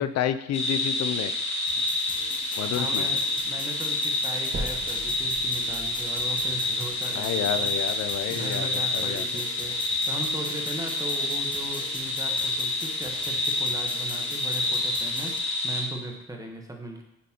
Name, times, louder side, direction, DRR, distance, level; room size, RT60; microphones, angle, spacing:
voice 1, 0.0-1.3 2.6-3.1 7.1-9.4, left 10 dB, 60° left, 11 dB, 0.4 m, -30 dB
sound 1, 0.5-15.8, left 2 dB, 40° left, 2.1 m, -28 dB
sound 2, 1.7-15.4, left 3 dB, 15° left, 0.6 m, -43 dB
voice 2, 2.6-7.7 8.3-17.0, right 2 dB, 10° right, 2 dB, 1.1 m, -38 dB
sound 3, 4.5-8.5 9.1-9.2 9.8-9.9 10.2-10.3 11.1-11.2, right 2 dB, 30° right, 1.1 m, -41 dB
8.3 x 3.9 x 2.9 m, 0.86 s
cardioid pair, 90°, 30 cm